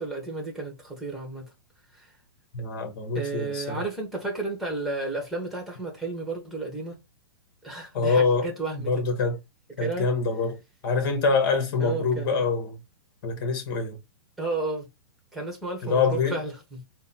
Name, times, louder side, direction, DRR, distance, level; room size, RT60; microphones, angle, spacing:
voice 1, 0.0-1.5 1.9-2.1 3.1-7.0 7.6-9.0 9.8-10.1 11.8-12.5 14.4-14.9 15.3-16.8, right 3 dB, ahead, 1.2 m, -32 dB
voice 2, 2.5-3.8 7.9-8.5 8.9-9.4 9.8-10.6 10.8-12.8 13.2-14.0 15.8-16.4, left 4 dB, 50° left, 1.6 m, -25 dB
3.9 x 2.3 x 4.0 m
hypercardioid pair, 155°, 13 cm